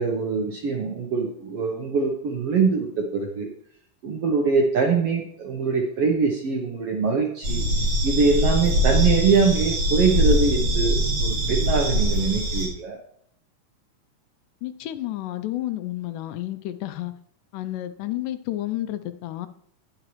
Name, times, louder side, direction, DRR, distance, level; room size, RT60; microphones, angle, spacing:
voice 1, 0.0-3.5 4.0-7.6 8.0-13.0, right 5 dB, 70° right, 1 dB, 1.4 m, -23 dB
sound 1, 7.4-12.7, equal, 40° right, 2.0 m, -22 dB
voice 2, 14.6-17.1 17.5-19.5, left 14 dB, 80° left, 11 dB, 2.1 m, -31 dB
10.0 x 8.8 x 3.1 m, 0.64 s
omnidirectional pair, 3.8 m